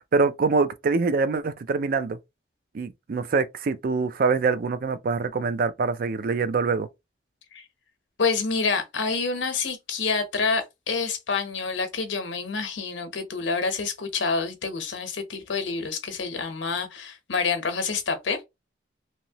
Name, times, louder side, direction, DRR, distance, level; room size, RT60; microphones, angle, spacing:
voice 1, 0.0-2.2 2.7-6.9, right 4 dB, 50° right, 0.3 m, -24 dB
voice 2, 8.2-18.4, left 4 dB, 90° left, 0.8 m, -27 dB
3.0 x 2.7 x 2.8 m
head